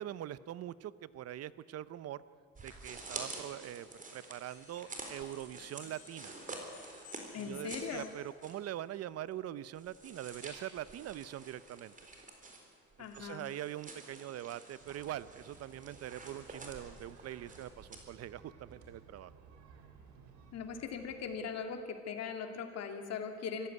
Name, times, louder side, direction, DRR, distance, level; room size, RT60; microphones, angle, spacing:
voice 1, 0.0-2.2 2.6-6.3 7.3-11.9 13.0-19.3, right 12 dB, 55° right, 17 dB, 0.8 m, -43 dB
sound 1, 2.6-8.7 9.0-9.1 9.7-18.0, right 3 dB, 25° right, 3.9 m, -49 dB
sound 2, 4.5-8.4, left 9 dB, 90° left, 4.4 m, -59 dB
voice 2, 7.3-8.1 13.0-13.4 20.5-23.7, left 6 dB, 60° left, 6 dB, 2.7 m, -40 dB
sound 3, 14.8-21.4, right 5 dB, 75° right, 3.4 m, -58 dB
25.0 x 15.5 x 9.5 m, 2.1 s
cardioid pair, 125°, 29 cm